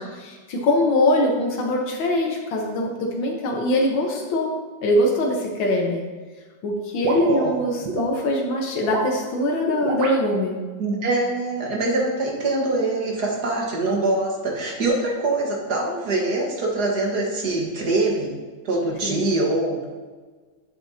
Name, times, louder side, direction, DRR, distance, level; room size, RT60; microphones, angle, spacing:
voice 1, 0.0-4.5 4.8-6.0 6.6-10.6 19.0-19.2, left 1 dB, 85° left, 0 dB, 2.0 m, -22 dB
sound 1, 7.0-8.1 8.8-9.2 9.8-10.2, right 4 dB, 75° right, 1.6 m, -28 dB
voice 2, 7.2-7.6 10.8-18.3 18.6-19.9, right 2 dB, 55° right, -1 dB, 2.1 m, -24 dB
10.5 x 7.8 x 2.8 m, 1.4 s
omnidirectional pair, 2.1 m